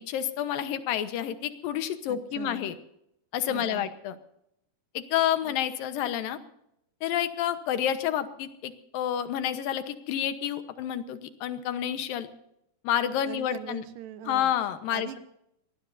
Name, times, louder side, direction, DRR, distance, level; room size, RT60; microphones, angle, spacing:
voice 1, 0.0-2.8 3.3-4.2 4.9-6.4 7.0-12.3 12.8-13.8 14.3-15.1, left 10 dB, 85° left, 10 dB, 2.9 m, -29 dB
voice 2, 2.1-2.7 3.5-3.9 5.4-5.5 13.3-14.5 14.9-15.2, right 10 dB, 75° right, 10 dB, 2.8 m, -41 dB
25.0 x 19.0 x 2.7 m, 0.78 s
omnidirectional pair, 3.9 m